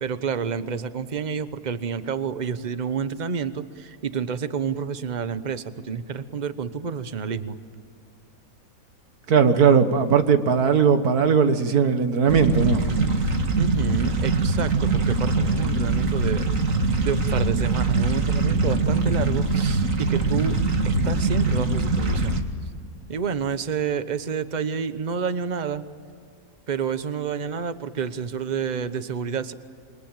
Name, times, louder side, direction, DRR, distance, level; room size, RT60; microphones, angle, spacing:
voice 1, 0.0-7.6 13.6-16.5 17.0-20.6 20.8-22.4 23.1-25.8 26.7-29.5, right 6 dB, 35° right, 12 dB, 1.0 m, -29 dB
voice 2, 9.3-12.8, right 6 dB, 85° right, 9 dB, 1.9 m, -18 dB
sound 1, 12.3-22.4, right 3 dB, 60° right, 2.3 m, -23 dB
27.0 x 23.5 x 9.0 m, 2.2 s
omnidirectional pair, 1.6 m